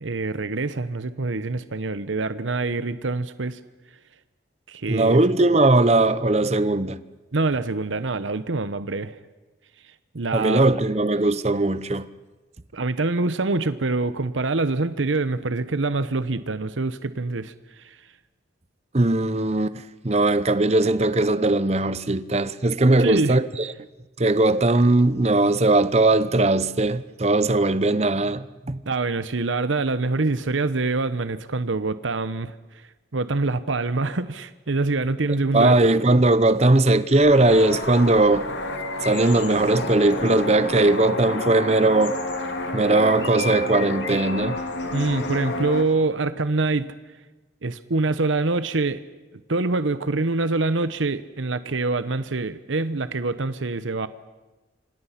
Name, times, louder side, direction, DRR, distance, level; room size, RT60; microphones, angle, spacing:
voice 1, 0.0-3.6 4.7-5.2 7.3-9.2 10.1-10.6 12.7-18.0 23.0-23.4 28.9-32.5 33.1-35.8 44.9-46.9 47.6-49.0 49.3-54.1, right 3 dB, 90° right, 0.9 m, -25 dB
voice 2, 4.9-7.0 10.3-12.1 18.9-23.7 24.2-28.8 35.5-38.5 39.0-42.2 42.7-44.6, right 2 dB, 35° right, 0.8 m, -19 dB
sound 1, 37.1-45.8, left 2 dB, 75° left, 2.5 m, -30 dB
26.0 x 26.0 x 5.8 m
head